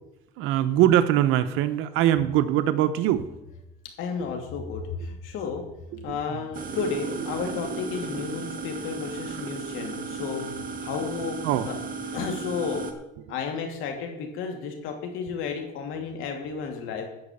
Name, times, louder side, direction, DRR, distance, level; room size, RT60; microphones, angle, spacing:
voice 1, 0.4-3.3 5.9-6.5 9.4-9.5 11.4-11.7, right 12 dB, 85° right, 11 dB, 0.9 m, -22 dB
voice 2, 4.0-5.6 6.0-12.9 13.3-17.1, left 5 dB, 80° left, 3 dB, 2.6 m, -32 dB
sound 1, 6.5-12.9, right 4 dB, 45° right, 1.5 m, -35 dB
12.0 x 5.0 x 8.5 m, 0.92 s
cardioid pair, 115°, 21 cm